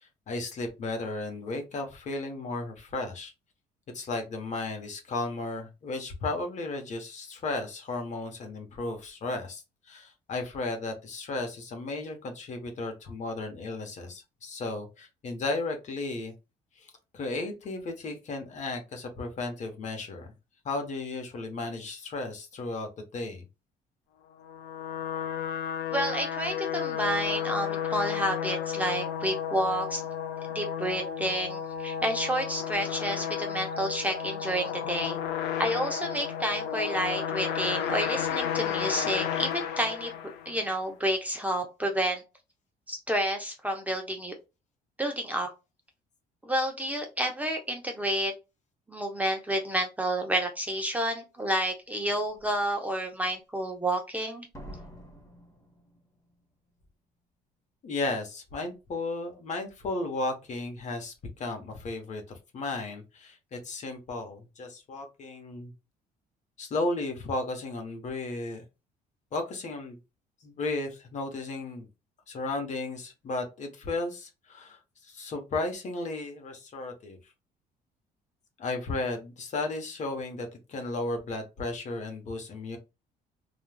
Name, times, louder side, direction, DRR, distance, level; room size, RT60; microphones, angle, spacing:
voice 1, 0.3-3.3 3.9-16.3 16.8-20.3 20.6-23.4 57.8-65.7 66.6-68.6 69.3-70.0 70.4-71.9 72.3-77.2 78.6-82.8, left 2 dB, 45° left, 4 dB, 0.9 m, -34 dB
sound 1, 24.4-40.7, left 9 dB, 80° left, 0.5 m, -32 dB
voice 2, 25.9-30.0 30.5-35.2 35.6-40.1 40.5-42.2 42.9-44.3 45.0-45.5 46.4-48.3 48.9-54.5, right 1 dB, 10° right, 3 dB, 0.6 m, -30 dB
Slam, 51.4-51.5 52.1-52.5 54.5-56.4 56.7-56.8, equal, 15° left, 1.0 m, -48 dB
3.3 x 2.3 x 2.2 m, 0.27 s
cardioid pair, 110°, 17 cm